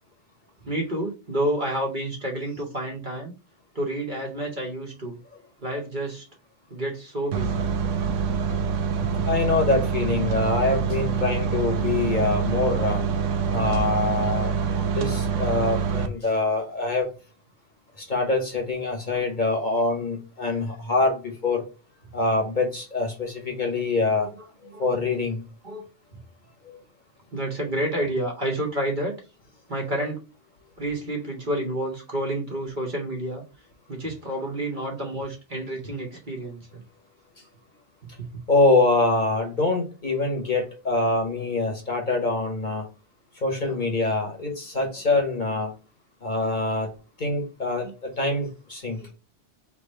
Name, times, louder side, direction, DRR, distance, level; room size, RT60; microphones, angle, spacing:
voice 1, 0.6-3.3 3.7-5.2 5.6-6.2 6.7-7.6 24.7-24.8 25.6-25.9 27.3-29.2 29.7-30.2 30.8-33.4 33.9-36.8 38.2-38.3 47.8-47.9 49.0-49.1, right 1 dB, 45° right, 1.4 m, -29 dB
sound 1, 7.3-16.1, right 6 dB, 90° right, 1.0 m, -25 dB
voice 2, 9.3-13.0 13.5-14.5 14.8-17.1 18.0-21.6 22.1-24.3 24.8-25.4 26.6-26.8 38.5-42.8 43.4-45.7 46.2-46.9 47.2-49.0, left 3 dB, 40° left, 1.2 m, -24 dB
3.5 x 3.0 x 4.3 m
omnidirectional pair, 1.2 m